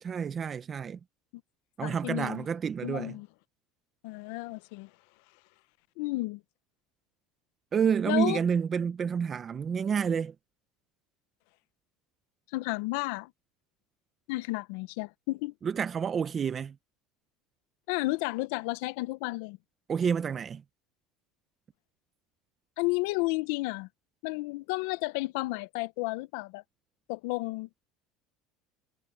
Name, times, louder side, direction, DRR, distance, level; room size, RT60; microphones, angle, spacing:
voice 1, 0.0-1.0 1.8-3.2 7.7-10.3 15.6-16.8 19.9-20.6, right 7 dB, 25° right, 0.6 m, -29 dB
voice 2, 1.8-2.5 2.8-3.3 4.0-4.9 6.0-6.4 8.1-8.4 12.5-13.3 14.3-15.5 17.9-19.6 22.8-23.9 24.2-26.6 27.1-27.7, left 22 dB, 70° left, 0.6 m, -32 dB
cardioid pair, 160°, 0 cm